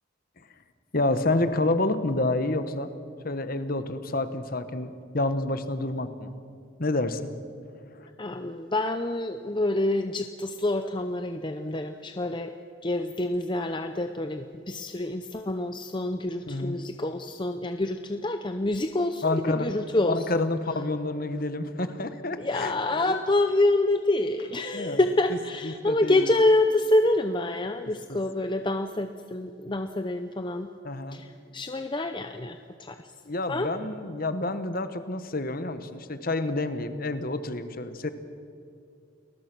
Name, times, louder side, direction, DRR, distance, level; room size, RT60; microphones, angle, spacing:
voice 1, 0.9-2.9 3.2-6.3 6.8-7.3 7.9-8.1 16.5-16.8 19.2-19.7 20.1-23.1 24.7-25.0 25.6-26.4 28.1-28.2 30.8-31.2 33.2-38.1, left 2 dB, 45° left, 11 dB, 1.2 m, -29 dB
voice 2, 8.2-12.5 12.8-20.4 22.4-30.7 31.1-33.1 33.5-33.7, left 2 dB, 20° left, 7 dB, 0.7 m, -27 dB
29.5 x 20.5 x 6.2 m, 2.4 s
head